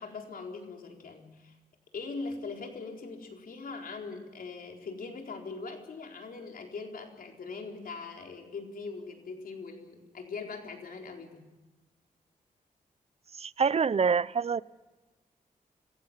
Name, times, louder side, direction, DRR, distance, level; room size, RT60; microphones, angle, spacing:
voice 1, 0.0-1.5 1.9-11.4, left 4 dB, 70° left, 4.1 m, -41 dB
voice 2, 13.4-14.6, right 6 dB, 45° right, 0.6 m, -26 dB
26.5 x 15.5 x 7.4 m
cardioid pair, 85°, 15 cm